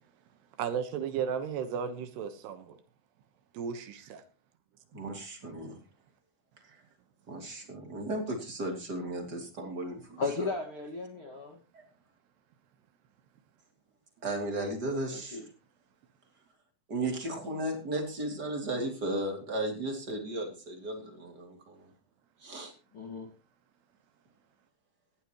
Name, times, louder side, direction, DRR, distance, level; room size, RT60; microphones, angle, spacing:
voice 1, 0.6-2.8 3.5-4.2, right 7 dB, 75° right, 3.2 m, -34 dB
voice 2, 4.9-5.8 6.7-6.8 7.3-10.5 11.7-11.9 14.2-15.4 16.9-21.9 22.4-22.7, right 1 dB, 25° right, 2.9 m, -35 dB
voice 3, 10.2-11.6 15.3-15.4 17.5-17.6 22.9-23.3, left 4 dB, 45° left, 1.8 m, -35 dB
18.5 x 13.5 x 3.1 m
omnidirectional pair, 5.0 m